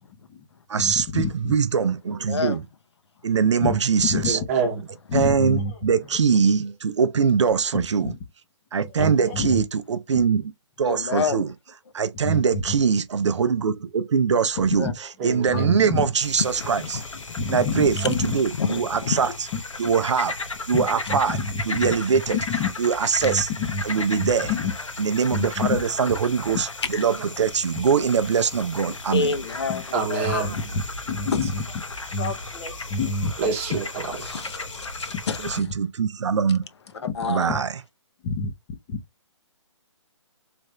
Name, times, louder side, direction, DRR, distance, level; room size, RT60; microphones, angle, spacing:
voice 1, 0.1-0.4 0.8-1.5 3.6-3.8 4.0-4.3 5.1-5.9 8.0-8.2 9.0-9.6 12.2-12.7 14.7-14.9 15.5-16.1 17.4-18.4 19.5-19.6 20.7-21.9 22.3-22.7 23.2-23.8 24.2-24.7 25.3-25.8 27.7-27.8 29.7-29.8 30.2-31.6 32.1-33.3 37.5-37.6 38.2-38.5 38.9-39.0, left 4 dB, 20° left, 0.5 m, -28 dB
voice 2, 0.7-2.6 3.2-4.4 5.1-8.1 8.7-10.4 10.8-11.5 11.9-14.9 15.2-17.0 17.5-19.3 19.8-20.4 20.7-21.4 21.7-22.4 22.8-23.5 23.9-24.5 25.0-29.3 35.4-36.6 37.3-37.7, right 6 dB, 65° right, 0.5 m, -22 dB
voice 3, 2.1-2.6 10.8-11.5 14.6-14.9 15.8-16.1 16.5-17.0 18.6-19.3 26.9-27.0 28.9-29.8 30.1-30.3 34.2-35.4 37.1-37.6, left 5 dB, 60° left, 0.6 m, -29 dB
voice 4, 4.3-4.9 9.0-9.4 15.2-15.9 18.3-18.4 29.9-30.5 33.4-34.5, right 5 dB, 25° right, 0.9 m, -27 dB
sound 1, 16.2-35.6, left 3 dB, 90° left, 0.9 m, -35 dB
3.4 x 2.5 x 3.0 m
hypercardioid pair, 150°, 16 cm